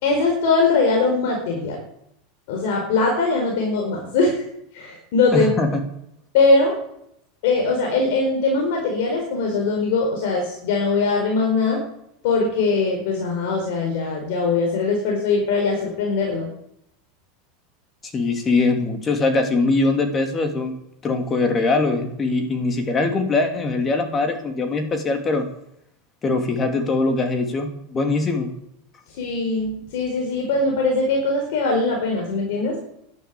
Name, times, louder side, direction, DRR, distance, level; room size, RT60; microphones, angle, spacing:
voice 1, 0.0-1.8 2.5-4.4 4.7-5.7 6.3-6.8 7.4-11.8 12.2-16.5 29.1-32.8, left 3 dB, 70° left, 0 dB, 4.7 m, -21 dB
voice 2, 5.3-5.8 18.0-20.7 21.0-25.4 26.2-28.5, left 3 dB, 25° left, 5 dB, 2.9 m, -22 dB
12.0 x 11.5 x 8.5 m, 0.76 s
supercardioid pair, 130°, 0 cm